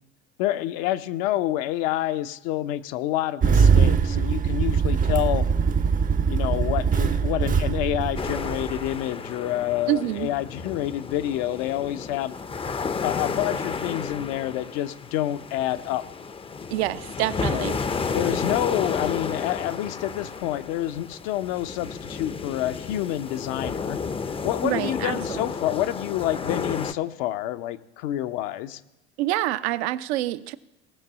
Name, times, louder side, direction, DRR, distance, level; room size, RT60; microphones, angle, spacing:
voice 1, 0.4-5.5 6.3-12.3 13.0-16.0 17.5-17.8 18.1-24.0 24.4-28.8, left 13 dB, 60° left, 11 dB, 0.8 m, -28 dB
Engine starting, 3.4-8.9, right 6 dB, 25° right, 0.6 m, -22 dB
sound 1, 8.2-26.9, left 5 dB, 15° left, 0.6 m, -32 dB
voice 2, 9.9-10.3 16.7-17.8 24.6-25.4 29.2-30.6, right 15 dB, 65° right, 13 dB, 0.7 m, -27 dB
18.0 x 6.0 x 7.3 m, 0.95 s
hypercardioid pair, 75°, 35 cm